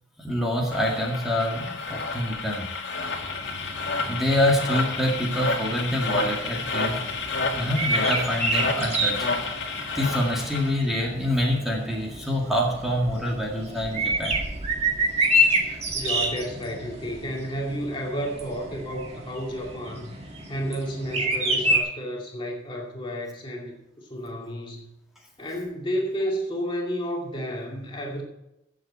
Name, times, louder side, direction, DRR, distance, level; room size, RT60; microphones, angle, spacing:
voice 1, 0.2-2.7 4.1-7.0 7.5-9.3 9.9-14.4, equal, ahead, -3 dB, 2.0 m, -26 dB
sound 1, 0.7-10.7, left 3 dB, 70° left, 2.0 m, -30 dB
sound 2, 3.0-21.8, right 1 dB, 35° right, 1.9 m, -29 dB
voice 2, 15.9-24.9 25.4-28.2, equal, 25° left, -1 dB, 2.3 m, -31 dB
16.0 x 7.4 x 4.4 m, 0.88 s
head